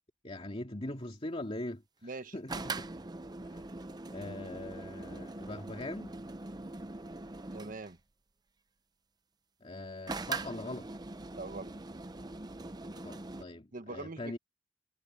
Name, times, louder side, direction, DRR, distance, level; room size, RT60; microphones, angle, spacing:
voice 1, 0.2-1.8 2.3-2.9 3.5-3.6 4.1-6.1 9.6-10.9 12.9-14.4, left 1 dB, 35° left, 2.5 m, -41 dB
voice 2, 2.0-2.3 7.5-8.0 11.3-11.7 13.7-14.4, right 3 dB, 50° right, 1.3 m, -42 dB
sound 1, 2.5-7.9 10.1-13.4, right 3 dB, 25° right, 0.7 m, -42 dB
head